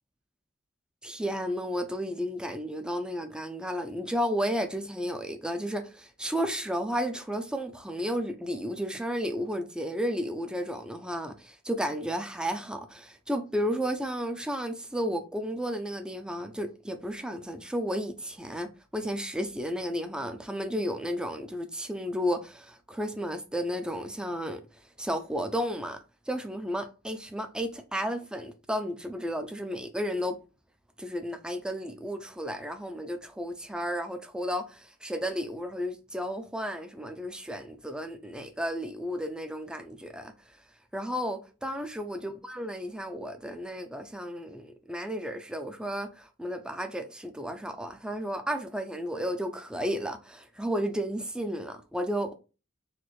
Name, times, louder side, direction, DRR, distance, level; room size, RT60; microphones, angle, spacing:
voice 1, 1.0-26.0 26.3-30.4 31.0-40.6 40.9-52.3, equal, 5° right, 0.4 m, -33 dB
4.1 x 2.5 x 3.1 m
head